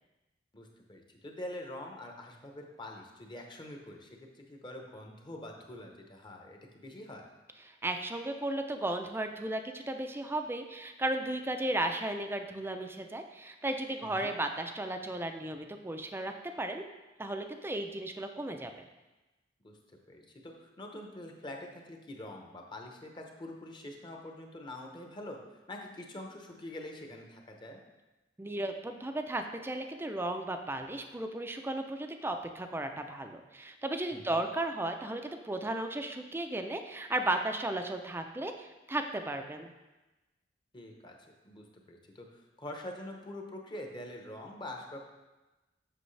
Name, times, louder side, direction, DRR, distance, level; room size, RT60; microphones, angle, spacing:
voice 1, 0.5-4.1 4.3-7.2 14.0-14.3 19.6-19.8 20.1-25.4 25.7-27.8 34.1-34.4 40.7-41.2 41.4-45.0, left 1 dB, 25° left, 2 dB, 0.9 m, -45 dB
voice 2, 7.7-16.8 17.2-18.8 28.4-39.7, right 1 dB, 15° right, 6 dB, 0.5 m, -35 dB
7.9 x 6.2 x 3.3 m, 1.1 s
head